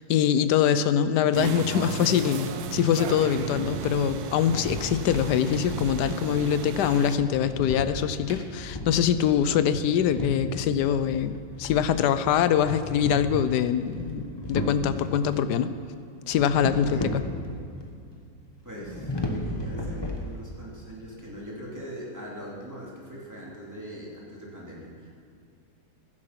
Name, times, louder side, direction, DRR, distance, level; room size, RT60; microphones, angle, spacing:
voice 1, 0.1-15.7 16.3-17.2, left 9 dB, 70° left, 12 dB, 1.0 m, -24 dB
sound 1, 1.3-7.2, right 7 dB, 65° right, 1.0 m, -35 dB
sound 2, 3.3-15.5 16.3-17.8 18.1-18.2 18.7-20.7, left 1 dB, 20° left, 0.8 m, -35 dB
voice 2, 16.8-17.2 18.6-25.1, equal, 10° right, -5 dB, 2.7 m, -41 dB
15.5 x 11.0 x 5.8 m, 2.3 s
omnidirectional pair, 2.2 m